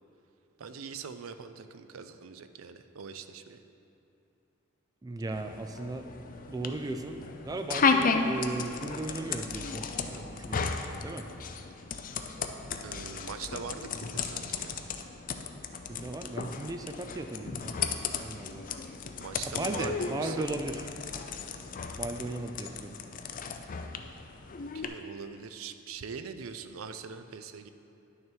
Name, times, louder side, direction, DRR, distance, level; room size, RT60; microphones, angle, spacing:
voice 1, 0.6-3.6 12.8-14.8 19.2-20.6 24.7-27.7, right 6 dB, 90° right, 10 dB, 0.5 m, -42 dB
voice 2, 5.0-6.1 6.5-10.7 11.0-11.3 15.9-17.8 18.1-18.7 19.6-20.9 21.9-23.0, right 2 dB, 20° right, 6 dB, 0.3 m, -36 dB
sound 1, 5.3-24.9, left 5 dB, 40° left, 0.5 m, -34 dB
10.5 x 6.5 x 4.5 m, 2.7 s
head